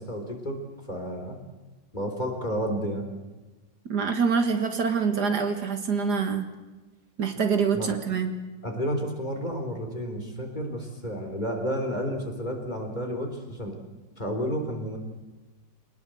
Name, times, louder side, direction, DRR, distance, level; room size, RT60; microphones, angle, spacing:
voice 1, 0.0-1.4 1.9-3.0 7.7-8.0 8.6-13.8 14.2-15.0, equal, 25° left, 3 dB, 3.9 m, -31 dB
voice 2, 3.9-6.5 7.2-8.4, right 5 dB, 60° right, 7 dB, 2.1 m, -25 dB
24.5 x 20.0 x 7.8 m, 1.2 s
omnidirectional pair, 2.0 m